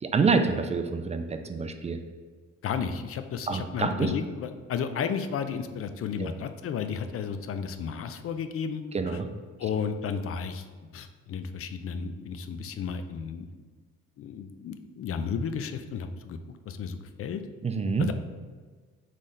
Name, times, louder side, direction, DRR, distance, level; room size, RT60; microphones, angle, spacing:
voice 1, 0.0-2.0 3.5-4.1 6.2-6.3 8.9-9.3 17.6-18.1, right 4 dB, 25° right, 7 dB, 0.3 m, -27 dB
voice 2, 2.6-8.8 9.1-9.2 9.6-10.7 10.9-13.5 14.2-17.4 18.0-18.1, left 6 dB, 50° left, 9 dB, 0.4 m, -33 dB
4.1 x 3.2 x 3.8 m, 1.5 s
cardioid pair, 90°, 30 cm